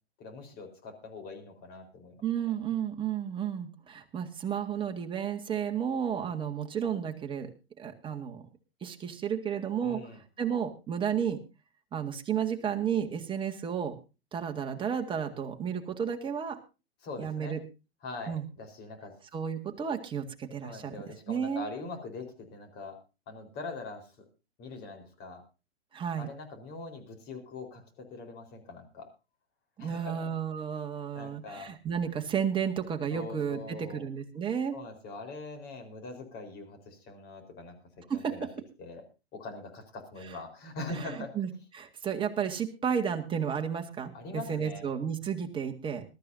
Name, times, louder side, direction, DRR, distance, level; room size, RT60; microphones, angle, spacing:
voice 1, 0.2-2.2 9.8-10.2 17.0-17.6 18.0-19.2 20.6-23.0 23.3-24.1 24.6-25.4 26.2-29.1 29.8-30.3 31.1-31.7 33.1-34.0 34.7-38.5 38.8-39.0 39.3-41.3 44.1-44.8, left 3 dB, 30° left, 5 dB, 4.3 m, -42 dB
voice 2, 2.2-7.5 7.8-8.4 8.8-11.4 11.9-14.0 14.3-16.6 17.2-17.6 18.3-18.4 19.3-21.0 21.3-21.7 25.9-26.3 29.8-34.8 38.1-38.5 40.9-46.0, right 8 dB, 15° right, 4 dB, 1.8 m, -32 dB
21.5 x 13.0 x 2.7 m, 0.29 s
figure-of-eight pair, 115°, 32 cm